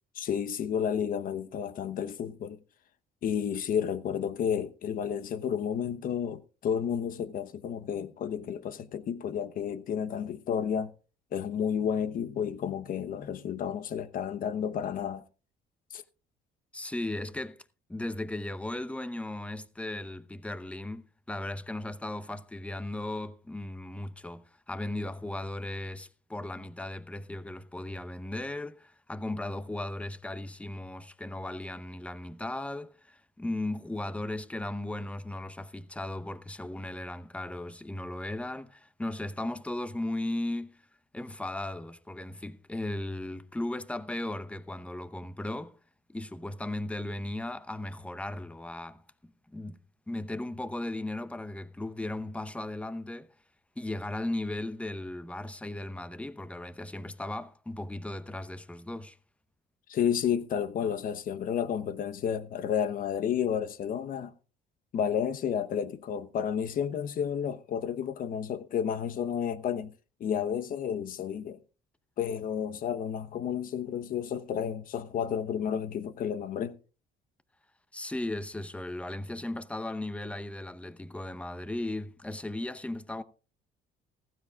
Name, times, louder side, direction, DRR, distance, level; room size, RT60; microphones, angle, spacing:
voice 1, 0.1-2.6 3.2-10.9 11.3-15.2 15.9-16.0 59.9-64.3 64.9-69.9 70.2-71.6 72.2-76.7, left 8 dB, 55° left, 1.0 m, -31 dB
voice 2, 16.7-17.6 17.9-40.8 41.1-45.8 46.1-49.0 49.5-49.8 50.1-53.3 53.8-59.2 77.9-83.2, left 1 dB, 5° left, 0.8 m, -36 dB
15.0 x 15.0 x 2.4 m
cardioid pair, 110°, 17 cm